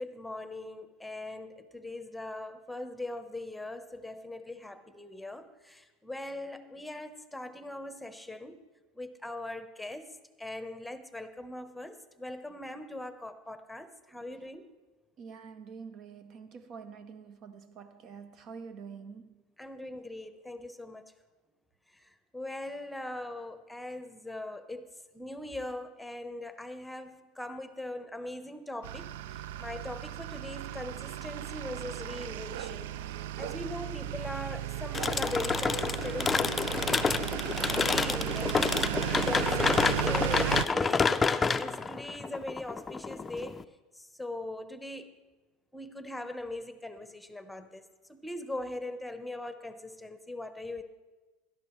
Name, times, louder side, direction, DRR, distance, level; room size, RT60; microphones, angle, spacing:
voice 1, 0.0-8.6 9.0-14.7 19.6-21.1 21.9-29.1 29.3-32.9 33.4-37.0 37.7-38.7 39.2-43.6 44.0-45.2 45.7-47.8 48.1-50.8, left 1 dB, 5° left, 1.0 m, -40 dB
voice 2, 15.2-19.4, right 6 dB, 45° right, 0.6 m, -47 dB
sound 1, 28.8-40.7, right 12 dB, 75° right, 0.3 m, -35 dB
sound 2, 34.9-43.6, left 4 dB, 20° left, 0.5 m, -28 dB
17.5 x 12.5 x 3.2 m
hypercardioid pair, 95°, 0 cm